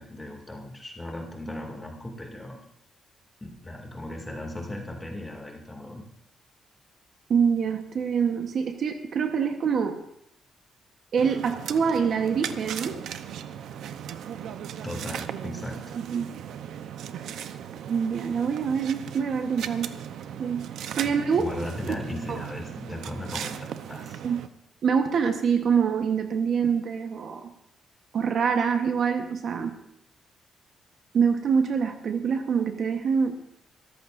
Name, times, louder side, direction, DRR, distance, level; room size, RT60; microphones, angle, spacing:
voice 1, 0.0-2.6 3.4-6.1 14.8-15.9 21.0-24.2, left 1 dB, 10° left, 1 dB, 2.3 m, -37 dB
voice 2, 7.3-10.0 11.1-13.0 16.1-16.3 17.9-19.9 20.4-20.7 20.9-21.5 22.3-22.4 24.2-24.4 24.8-27.5 28.1-29.7 31.1-33.3, right 6 dB, 50° right, 6 dB, 1.1 m, -25 dB
sound 1, 11.2-24.5, right 9 dB, 90° right, 0.7 m, -37 dB
24.0 x 14.0 x 2.6 m, 0.74 s
wide cardioid pair, 170°, 0 cm